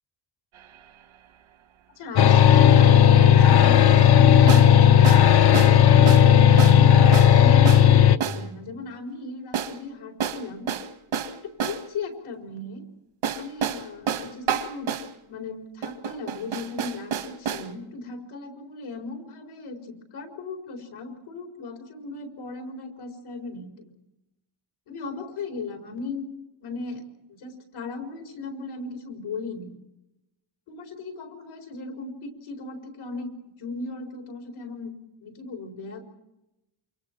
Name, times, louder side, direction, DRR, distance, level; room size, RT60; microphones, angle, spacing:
sound 1, 0.6-0.7 4.5-4.7 5.0-5.3 5.5-5.8 6.1-6.3 6.6-6.8 7.1-7.3 7.7-7.9 8.2-8.4 9.5-9.8 10.2-11.8 13.2-15.1 15.8-17.7, right 7 dB, 80° right, 1.9 m, -29 dB
voice 1, 1.9-10.7 11.3-12.9 13.3-14.9 15.3-23.9 24.9-26.2 26.6-29.8 30.7-33.3 33.6-34.9 35.2-36.0, left 3 dB, 85° left, 3 dB, 4.8 m, -37 dB
sound 2, 2.2-8.2, left 9 dB, 50° left, 0.8 m, -14 dB
28.5 x 25.5 x 4.6 m, 0.90 s
cardioid pair, 125°, 47 cm